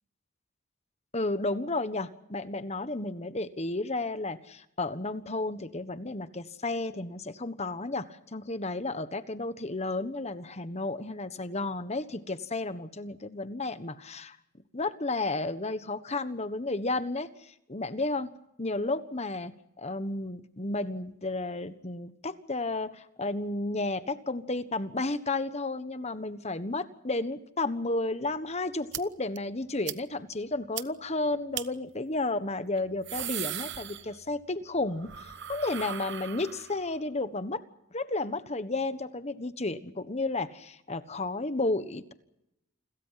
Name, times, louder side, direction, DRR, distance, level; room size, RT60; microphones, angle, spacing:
voice 1, 1.1-14.4 14.7-18.3 18.6-19.5 19.8-37.6 37.9-42.1, left 2 dB, 30° left, 12 dB, 1.3 m, -32 dB
sound 1, 28.9-29.0 29.4-29.5 29.9-30.0 30.3-30.4 30.8-30.9 31.5-31.7 32.8-34.4 34.7-36.9, right 11 dB, 55° right, 1.0 m, -38 dB
29.0 x 22.0 x 5.9 m, 0.83 s
head